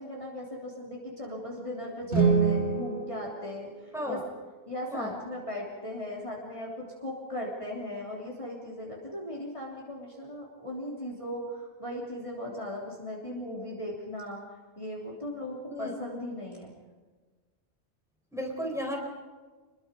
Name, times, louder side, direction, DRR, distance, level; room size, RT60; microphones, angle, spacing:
voice 1, 0.0-4.2 4.7-14.4 14.8-16.7, left 1 dB, 30° left, -3 dB, 3.3 m, -38 dB
sound 1, 2.0-4.3, right 5 dB, 80° right, 3.5 m, -27 dB
voice 2, 18.3-19.0, equal, ahead, 1 dB, 4.5 m, -34 dB
26.5 x 22.0 x 5.3 m, 1.3 s
omnidirectional pair, 1.1 m